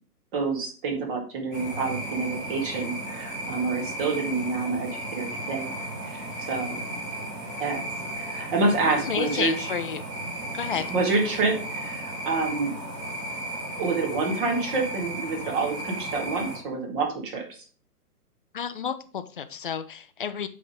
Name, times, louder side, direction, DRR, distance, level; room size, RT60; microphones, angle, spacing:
voice 1, 0.3-5.8 6.1-6.8 7.6-7.8 8.1-9.5 10.9-12.7 13.6-17.6, right 3 dB, 35° right, 1 dB, 2.2 m, -28 dB
sound 1, 1.5-16.6, right 1 dB, 15° right, 2.3 m, -35 dB
voice 2, 8.9-10.0 10.5-10.9 18.5-20.5, left 7 dB, 35° left, 11 dB, 0.5 m, -31 dB
8.2 x 3.7 x 5.1 m, 0.40 s
figure-of-eight pair, 125°, 48 cm